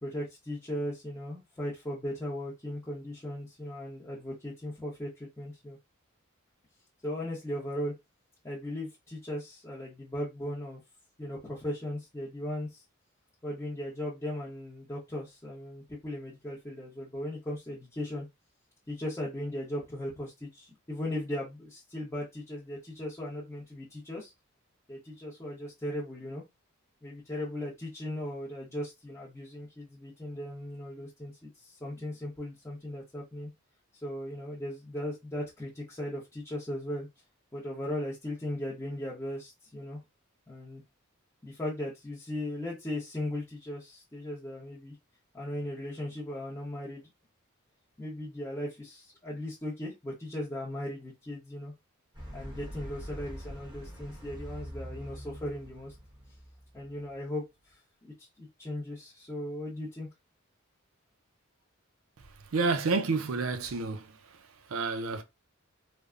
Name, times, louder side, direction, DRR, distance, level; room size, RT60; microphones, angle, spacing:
voice 1, 0.0-5.8 7.0-7.9 8.4-10.8 11.2-12.8 13.4-18.3 18.9-24.3 24.9-26.4 27.0-33.5 34.0-37.1 37.5-40.0 40.5-40.8 41.4-44.9 45.3-47.1 48.0-51.7 52.3-55.9 56.7-60.1, left 1 dB, 15° left, 0.8 m, -37 dB
sound 1, 52.1-57.2, equal, 20° right, 1.0 m, -44 dB
voice 2, 62.5-64.1 64.7-65.2, right 4 dB, 70° right, 0.5 m, -29 dB
3.3 x 2.0 x 2.4 m
head